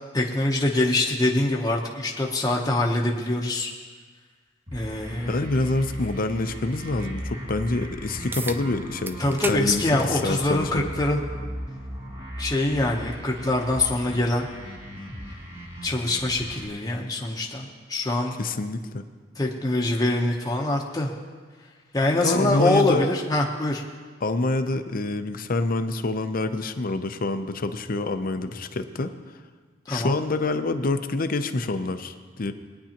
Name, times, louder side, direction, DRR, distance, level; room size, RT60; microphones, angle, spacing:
voice 1, 0.1-3.7 4.7-5.4 9.2-11.2 12.4-14.5 15.8-18.3 19.4-21.1 21.9-23.8 29.9-30.2, left 2 dB, 20° left, -2 dB, 0.9 m, -24 dB
sound 1, 4.7-16.7, equal, 30° right, 2.3 m, -37 dB
voice 2, 5.3-9.2 9.5-10.9 18.4-19.0 22.2-23.1 24.2-29.1 29.9-32.5, left 2 dB, 50° left, 9 dB, 0.6 m, -27 dB
sound 2, 8.3-8.6 9.1-9.6 10.0-10.2 11.3-11.4 16.3-16.4, right 3 dB, 10° right, 0.3 m, -33 dB
20.5 x 9.5 x 2.9 m, 1.5 s
head